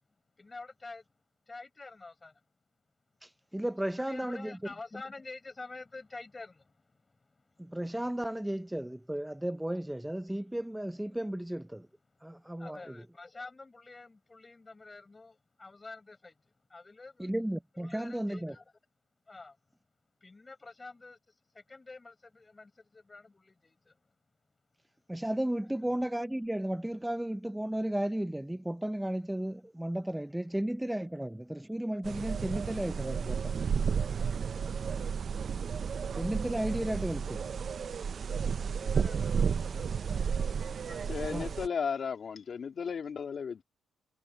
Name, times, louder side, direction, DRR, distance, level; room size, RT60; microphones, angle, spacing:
voice 1, 0.4-2.5 3.9-7.8 12.1-17.3 17.7-18.6 19.3-19.8 20.2-24.2 25.6-25.9 38.5-41.3, left 3 dB, 25° left, 7.1 m, -49 dB
voice 2, 3.2-4.6 7.6-11.9 12.2-13.0 17.2-18.5 25.1-33.6 36.1-37.5 41.3-41.5, right 1 dB, 5° right, 0.6 m, -34 dB
sound 1, 32.0-41.7, right 6 dB, 50° right, 0.8 m, -32 dB
voice 3, 41.1-43.6, left 6 dB, 50° left, 2.4 m, -35 dB
cardioid pair, 90°, 0 cm